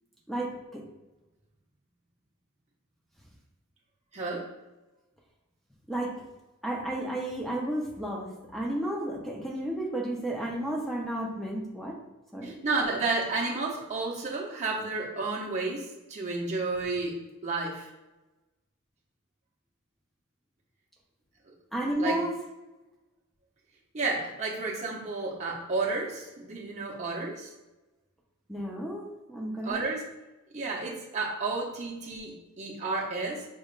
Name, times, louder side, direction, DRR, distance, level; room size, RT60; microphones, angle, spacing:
voice 1, 0.3-0.8 5.9-6.2 6.6-12.0 12.3-12.5 21.7-22.3 28.5-29.8, right 1 dB, ahead, -2 dB, 0.7 m, -32 dB
voice 2, 4.1-4.5 12.4-17.2 17.4-17.9 22.0-22.2 23.9-27.5 29.6-30.0 30.5-33.4, right 3 dB, 30° right, -4 dB, 0.8 m, -31 dB
5.2 x 3.4 x 2.5 m, 1.1 s
head